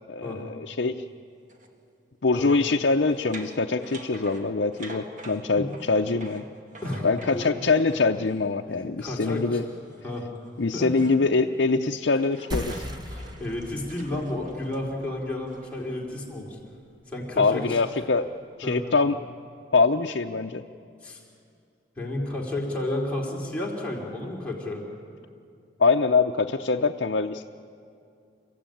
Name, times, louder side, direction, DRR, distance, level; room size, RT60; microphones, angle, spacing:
voice 1, 0.1-0.9 2.2-6.4 7.0-9.6 10.6-12.9 17.4-18.3 18.6-19.2 19.7-20.6 25.8-27.4, left 4 dB, 70° left, 2 dB, 0.7 m, -24 dB
sound 1, 1.5-1.7 2.5-8.4 9.7-11.3 11.6-15.9, right 2 dB, 40° right, 1.9 m, -46 dB
voice 2, 6.8-7.6 9.0-9.6 10.0-10.3 10.7-10.9 12.8-16.6 17.1-17.8 18.6-18.8 21.0-21.2 22.0-24.8, left 1 dB, 5° left, -4 dB, 3.7 m, -32 dB
sound 2, 12.5-17.6, left 1 dB, 25° right, 1.4 m, -39 dB
29.5 x 15.0 x 9.2 m, 2.5 s
head